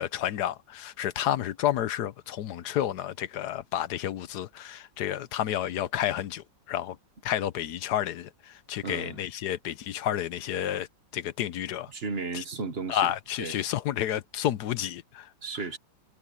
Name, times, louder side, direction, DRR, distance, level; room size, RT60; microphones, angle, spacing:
voice 1, 0.0-7.0 7.2-10.9 11.1-11.9 12.3-12.4 12.9-15.3 15.5-15.6, left 11 dB, 65° left, 1.2 m, -30 dB
voice 2, 8.8-9.2 11.9-13.1 13.4-13.6 15.4-15.8, right 4 dB, 35° right, 1.4 m, -34 dB
omnidirectional pair, 2.1 m